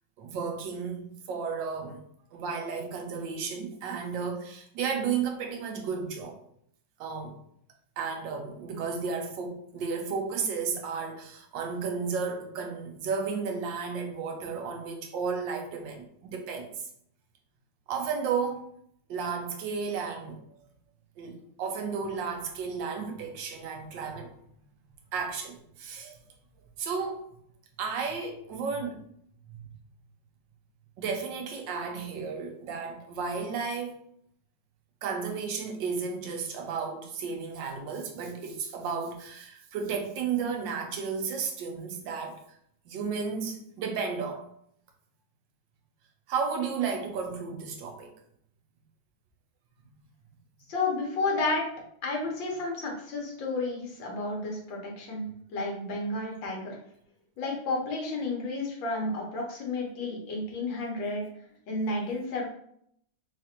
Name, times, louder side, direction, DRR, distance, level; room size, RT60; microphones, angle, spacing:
voice 1, 0.2-2.0 2.3-6.4 7.0-7.4 8.0-16.9 17.9-18.7 19.1-20.6 21.2-24.3 25.1-26.2 26.8-27.2 27.8-29.0 29.5-29.6 31.0-34.0 35.0-42.4 42.9-44.5 46.3-48.1, right 5 dB, 85° right, 3 dB, 1.4 m, -33 dB
voice 2, 50.7-51.6 52.0-56.8 57.4-61.3 61.7-62.5, left 2 dB, 85° left, -1 dB, 1.8 m, -31 dB
4.0 x 2.5 x 4.3 m, 0.69 s
omnidirectional pair, 2.0 m